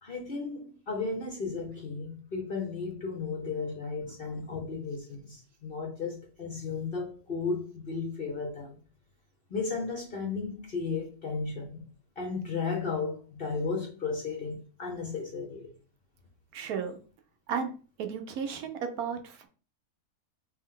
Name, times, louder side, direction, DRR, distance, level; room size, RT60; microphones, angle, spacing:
voice 1, 0.0-8.8 9.5-11.9 12.2-15.7, left 4 dB, 45° left, 0.8 m, -34 dB
voice 2, 16.5-17.0 17.5-17.7 18.0-19.5, right 6 dB, 75° right, 1.1 m, -34 dB
3.3 x 3.1 x 3.7 m
omnidirectional pair, 1.6 m